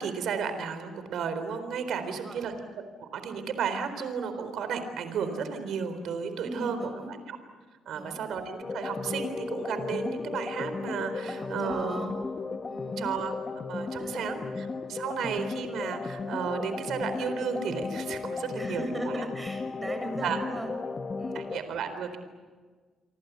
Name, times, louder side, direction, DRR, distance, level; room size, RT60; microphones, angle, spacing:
voice 1, 0.0-2.5 3.0-6.8 7.1-7.4 7.9-12.0 13.0-13.3 13.7-19.2 20.2-20.4 21.3-22.2, right 6 dB, 70° right, 9 dB, 3.9 m, -33 dB
voice 2, 2.0-2.4 6.4-7.1 7.9-8.2 11.2-12.1 12.6-13.1 14.0-14.3 18.5-20.7 21.2-21.4, right 1 dB, 15° right, 6 dB, 6.6 m, -38 dB
sound 1, 8.6-21.6, left 4 dB, 30° left, 1.3 m, -35 dB
29.5 x 24.0 x 8.2 m, 1.4 s
cardioid pair, 120°, 0 cm